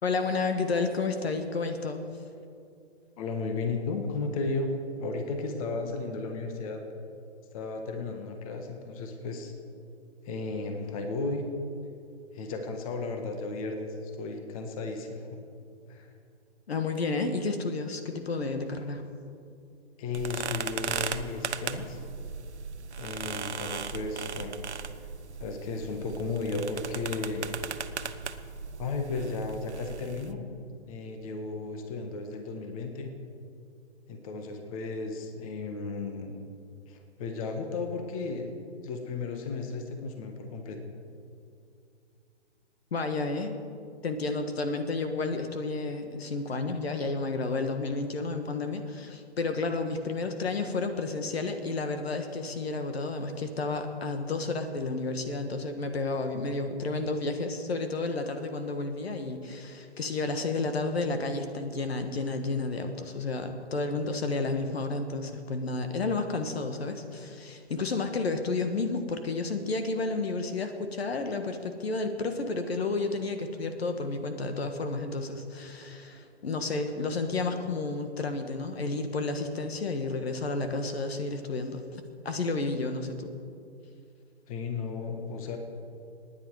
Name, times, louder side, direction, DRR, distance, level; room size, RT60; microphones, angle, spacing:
voice 1, 0.0-2.1 16.7-19.0 42.9-43.6 44.0-83.3, left 3 dB, 65° left, 7 dB, 1.6 m, -31 dB
voice 2, 3.2-4.7 5.0-6.8 7.5-9.5 10.2-11.4 12.3-15.4 15.9-16.1 20.0-22.0 23.0-24.5 25.4-27.5 28.8-30.4 30.9-33.1 34.1-36.4 36.9-38.6 38.8-40.8 84.5-85.6, left 3 dB, 30° left, 5 dB, 1.6 m, -34 dB
sound 1, 20.1-30.3, right 5 dB, 75° right, 1.0 m, -37 dB
25.5 x 10.0 x 4.8 m, 2.5 s
figure-of-eight pair, 140°, 34 cm